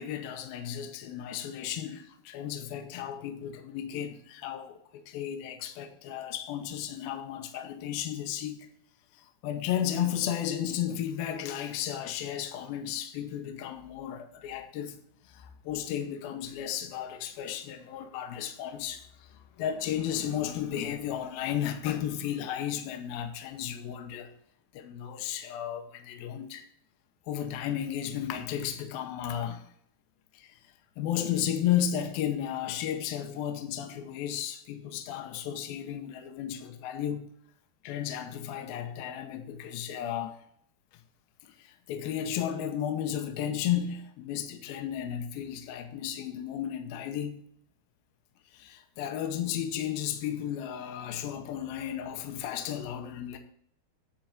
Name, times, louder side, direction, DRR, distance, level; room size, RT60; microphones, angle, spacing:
voice 1, 0.0-8.7 9.1-15.0 15.2-24.3 24.7-26.7 27.3-29.7 30.3-30.6 31.0-37.3 37.8-40.4 41.4-47.4 48.5-53.4, left 10 dB, 75° left, 2.5 m, -34 dB
10.5 x 4.5 x 7.3 m
omnidirectional pair, 4.8 m